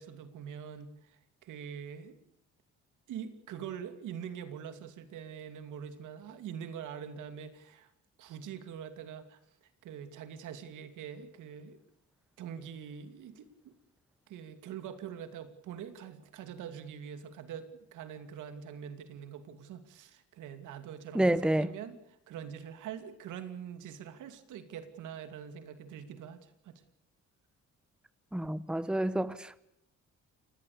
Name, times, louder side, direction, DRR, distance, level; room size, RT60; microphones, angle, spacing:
voice 1, 0.0-2.2 3.1-7.9 8.2-9.4 9.8-11.8 12.4-13.8 14.3-22.0 22.3-26.8, right 8 dB, 85° right, 2.6 m, -44 dB
voice 2, 21.1-21.7 28.3-29.6, right 1 dB, 5° right, 1.0 m, -29 dB
29.5 x 17.5 x 6.8 m
cardioid pair, 90°, 30 cm